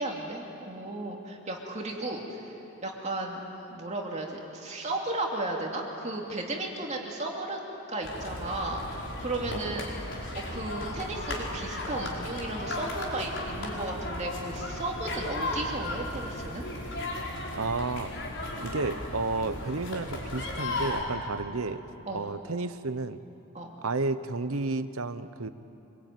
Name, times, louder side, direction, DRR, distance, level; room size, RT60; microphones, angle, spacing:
voice 1, 0.0-2.5 2.8-7.6 7.9-9.9 10.3-16.6 22.1-22.2 23.5-23.8, right 2 dB, 30° right, 0 dB, 2.7 m, -34 dB
sound 1, 8.0-21.0, left 1 dB, 55° left, 4.9 m, -35 dB
voice 2, 17.5-18.1 18.6-21.8 22.1-23.2 23.8-25.5, right 3 dB, 70° right, 12 dB, 0.9 m, -31 dB
25.5 x 21.5 x 9.3 m, 2.9 s
head